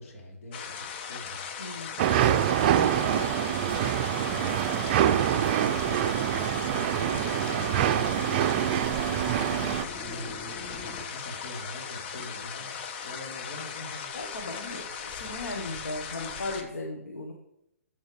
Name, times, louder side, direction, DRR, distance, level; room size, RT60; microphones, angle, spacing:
voice 1, 0.0-1.4 2.1-7.0 7.3-10.4 10.9-12.7 13.0-14.2 14.8-15.0, left 1 dB, 65° left, 0 dB, 3.5 m, -44 dB
sound 1, 0.5-16.6, left 7 dB, 45° left, 1.2 m, -38 dB
voice 2, 1.6-2.0 14.1-14.9 15.1-17.3, left 2 dB, 85° left, 1 dB, 1.3 m, -36 dB
sound 2, 2.0-9.8, right 11 dB, 40° right, 0.5 m, -25 dB
sound 3, 2.6-11.0, left 2 dB, 20° left, 1.2 m, -43 dB
12.0 x 7.4 x 3.3 m, 0.83 s
hypercardioid pair, 135°, 8 cm